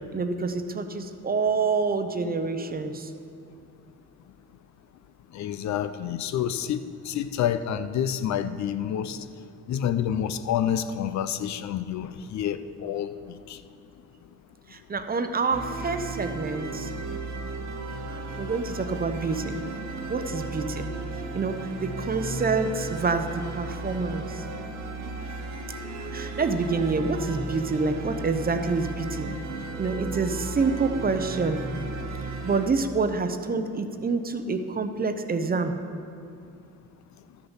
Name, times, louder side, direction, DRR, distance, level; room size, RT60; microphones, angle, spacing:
voice 1, 0.1-3.1 14.7-16.9 18.4-19.5 20.1-20.9 21.3-24.4 26.1-29.3 29.8-31.6 32.2-35.7, right 4 dB, 30° right, 8 dB, 0.7 m, -27 dB
voice 2, 5.3-9.2 9.7-13.1 13.5-13.6, left 9 dB, 65° left, 11 dB, 0.6 m, -28 dB
sound 1, 15.5-32.7, right 2 dB, 65° right, 1.1 m, -35 dB
12.5 x 7.0 x 5.6 m, 2.5 s
cardioid pair, 90°, 30 cm